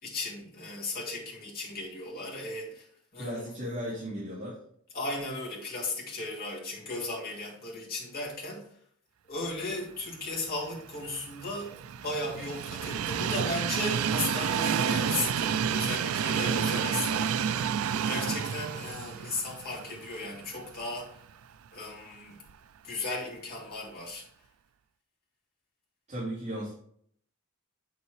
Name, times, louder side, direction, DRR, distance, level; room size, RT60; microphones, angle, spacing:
voice 1, 0.0-2.9 3.1-3.5 4.9-8.6 9.3-11.7 12.0-17.7 18.1-21.1 21.7-22.4 22.8-24.2, left 2 dB, 45° left, 2.7 m, -36 dB
voice 2, 3.2-4.6 26.1-26.7, equal, 35° right, 2.7 m, -35 dB
Train, 10.7-20.9 21.3-21.4 22.5-22.6, right 7 dB, 75° right, 0.4 m, -30 dB
8.1 x 7.1 x 3.2 m
head